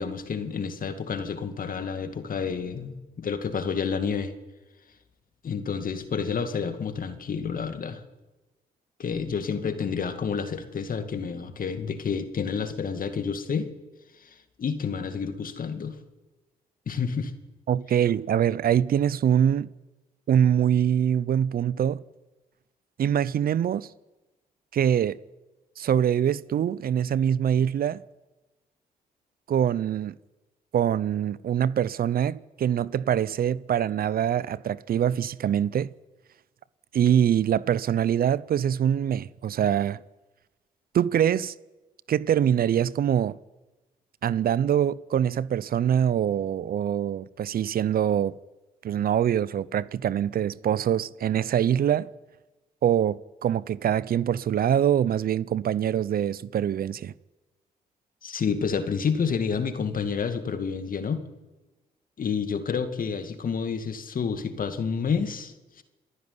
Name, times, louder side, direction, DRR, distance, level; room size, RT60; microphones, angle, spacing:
voice 1, 0.0-4.3 5.4-8.0 9.0-13.7 14.2-16.0 16.9-17.3 58.2-61.2 62.2-65.8, left 6 dB, 55° left, 2.3 m, -29 dB
voice 2, 17.7-19.7 20.3-22.0 23.0-23.9 24.7-25.2 25.8-28.0 29.5-30.1 30.7-35.9 36.9-40.0 40.9-41.5 42.1-43.4 44.2-48.3 48.8-52.1 52.8-57.1, right 9 dB, 60° right, 0.6 m, -24 dB
27.0 x 11.0 x 9.8 m
supercardioid pair, 60°, 17 cm